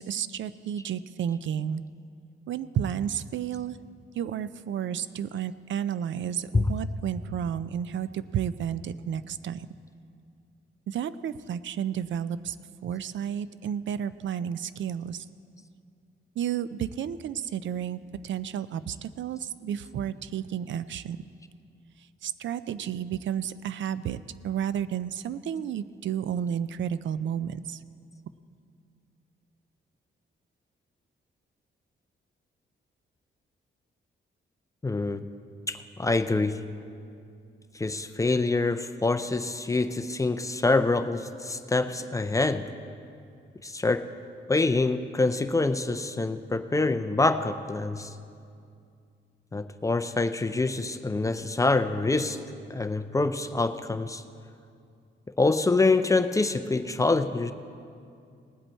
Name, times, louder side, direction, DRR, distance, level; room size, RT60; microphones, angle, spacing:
voice 1, 0.0-1.8 2.5-3.8 4.2-9.7 10.9-12.6 12.8-15.3 16.4-21.2 22.2-24.2 24.4-27.8, right 9 dB, 70° right, 15 dB, 0.4 m, -32 dB
voice 2, 34.8-35.3 35.7-36.6 37.7-42.7 43.6-44.1 44.5-48.1 49.5-52.4 52.7-54.2 55.4-57.5, left 3 dB, 15° left, 9 dB, 0.4 m, -25 dB
19.0 x 8.0 x 4.4 m, 2.4 s
wide cardioid pair, 140°, 20 cm